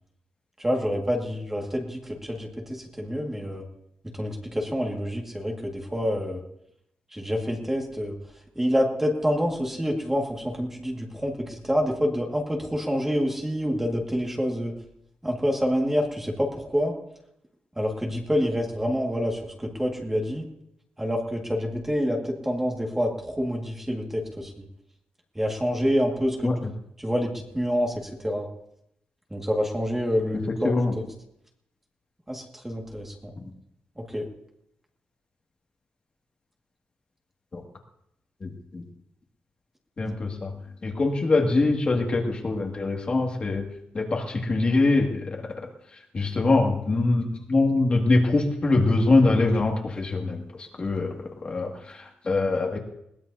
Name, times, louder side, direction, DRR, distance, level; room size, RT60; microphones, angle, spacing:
voice 1, 0.6-3.6 4.2-6.4 7.1-8.1 8.6-14.8 15.2-16.9 17.8-20.5 21.0-24.5 25.4-26.5 27.0-28.5 29.3-30.7 32.3-33.3 34.0-34.3, equal, 10° right, 0 dB, 1.9 m, -27 dB
voice 2, 38.4-38.8 40.0-43.7 43.9-45.7 46.1-52.8, left 2 dB, 30° left, 0 dB, 2.1 m, -24 dB
21.5 x 19.0 x 2.7 m, 0.78 s
wide cardioid pair, 160°, 3 cm